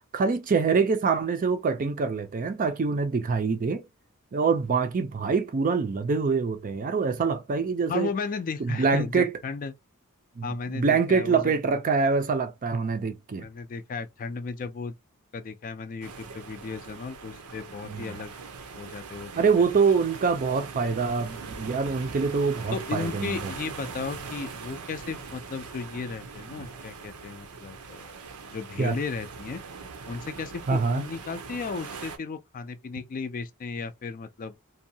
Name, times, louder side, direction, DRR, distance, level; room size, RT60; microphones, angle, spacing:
voice 1, 0.1-3.8 4.3-8.1 8.6-9.4 10.4-13.5 17.9-18.2 19.4-23.5 28.8-28.9 30.7-31.0, right 5 dB, 40° right, 0.4 m, -25 dB
voice 2, 7.9-9.7 10.4-11.5 13.3-14.9 15.3-18.3 18.7-19.4 22.7-28.1 28.4-29.6 30.1-34.6, left 4 dB, 40° left, 0.3 m, -35 dB
sound 1, 16.0-32.2, right 5 dB, 85° right, 0.6 m, -41 dB
2.6 x 2.2 x 2.7 m
head